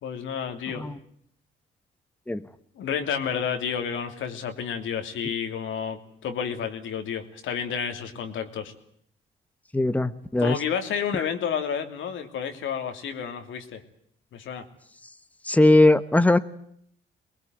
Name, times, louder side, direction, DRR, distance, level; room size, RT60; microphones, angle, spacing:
voice 1, 0.0-0.9 2.8-8.7 10.4-13.8 14.3-14.6, left 7 dB, 80° left, 6 dB, 3.0 m, -30 dB
voice 2, 9.7-10.6 15.5-16.4, left 2 dB, 5° left, 11 dB, 1.2 m, -19 dB
23.0 x 20.5 x 9.4 m, 0.67 s
cardioid pair, 90°, 20 cm